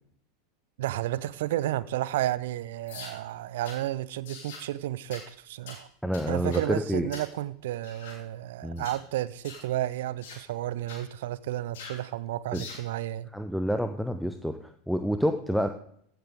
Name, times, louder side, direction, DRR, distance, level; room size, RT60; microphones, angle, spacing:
voice 1, 0.8-5.9 6.3-13.3, right 14 dB, 60° right, 0.5 m, -32 dB
sound 1, 2.9-3.2 3.6-3.8 4.3-4.7 5.1-5.3 5.7-5.8 6.1-6.7 7.1-7.3 7.8-8.2 8.8-9.0 9.4-9.7 10.2-10.4 10.9-11.1 11.7-12.0 12.5-12.9, left 4 dB, 60° left, 3.2 m, -44 dB
voice 2, 6.0-7.1 8.6-8.9 12.5-12.6 13.3-15.7, equal, ahead, 0.7 m, -28 dB
15.5 x 8.2 x 3.7 m
figure-of-eight pair, 85°, 0 cm